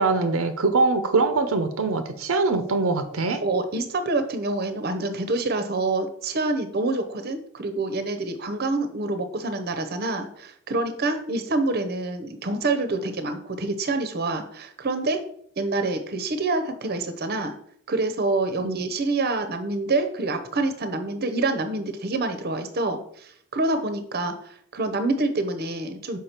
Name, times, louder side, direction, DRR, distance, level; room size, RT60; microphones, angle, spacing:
voice 1, 0.0-3.4 18.6-18.8, right 3 dB, 80° right, 9 dB, 0.7 m, -23 dB
voice 2, 3.4-15.2 15.6-17.5 17.9-24.3 24.7-26.2, right 2 dB, 50° right, 8 dB, 0.8 m, -26 dB
6.6 x 5.0 x 4.4 m, 0.63 s
head